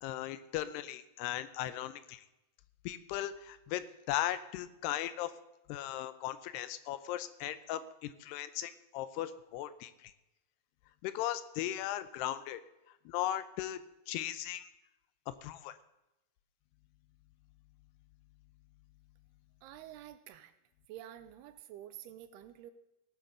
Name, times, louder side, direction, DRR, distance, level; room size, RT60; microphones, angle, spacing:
voice 1, 0.0-2.2 2.9-5.3 5.7-10.1 11.0-12.6 13.1-13.8 14.1-14.6 15.3-15.8, left 13 dB, 80° left, 13 dB, 2.6 m, -37 dB
voice 2, 19.6-20.5 20.9-22.7, right 12 dB, 80° right, 11 dB, 2.6 m, -49 dB
16.5 x 7.6 x 6.7 m, 0.94 s
omnidirectional pair, 4.9 m